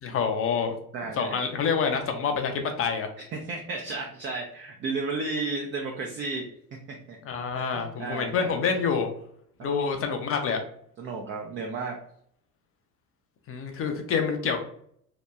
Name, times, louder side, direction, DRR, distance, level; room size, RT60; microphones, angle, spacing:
voice 1, 0.0-0.8 1.2-3.1 7.2-9.1 9.6-10.6 13.5-14.6, left 6 dB, 30° left, 5 dB, 0.5 m, -27 dB
voice 2, 0.9-1.4 3.2-6.5 6.9-7.2 7.6-8.5 9.6-10.3 11.0-12.0, right 3 dB, 30° right, 1 dB, 0.4 m, -33 dB
2.9 x 2.1 x 2.2 m, 0.65 s
hypercardioid pair, 65°, 46 cm